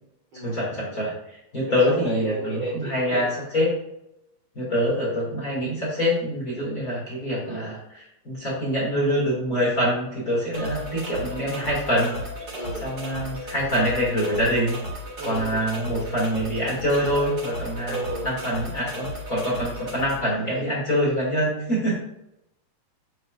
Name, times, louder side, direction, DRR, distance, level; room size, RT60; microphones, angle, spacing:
voice 1, 0.4-3.7 4.6-12.2 12.8-14.8 15.2-18.0 18.2-22.0, equal, 30° left, -6 dB, 2.2 m, -25 dB
voice 2, 1.7-3.3 7.4-7.7 12.5-12.9 15.2-16.1 17.8-18.3, right 1 dB, 45° right, -5 dB, 2.0 m, -33 dB
sound 1, 10.5-20.1, equal, 25° right, 1.6 m, -35 dB
7.7 x 7.6 x 2.5 m, 0.83 s
omnidirectional pair, 4.0 m